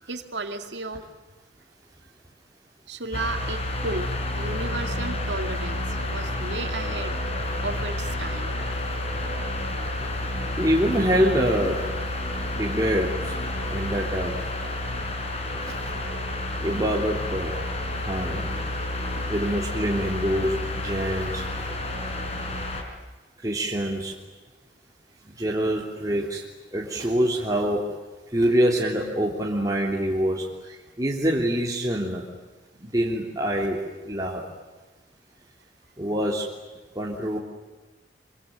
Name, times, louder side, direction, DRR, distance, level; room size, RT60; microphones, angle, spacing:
voice 1, 0.0-1.1 2.9-7.2 7.6-8.5, right 3 dB, 85° right, 6 dB, 2.5 m, -34 dB
sound 1, 3.1-22.8, left 1 dB, 40° left, 5.0 m, -30 dB
voice 2, 10.6-11.8 12.5-13.3 13.7-14.3 16.6-17.5 18.0-18.5 19.3-21.5 23.4-24.1 25.4-26.4 26.7-27.9 28.3-30.4 31.0-32.2 32.8-34.4 36.0-36.5 36.9-37.4, equal, 20° right, -3 dB, 3.3 m, -25 dB
25.5 x 25.5 x 9.2 m, 1.2 s
head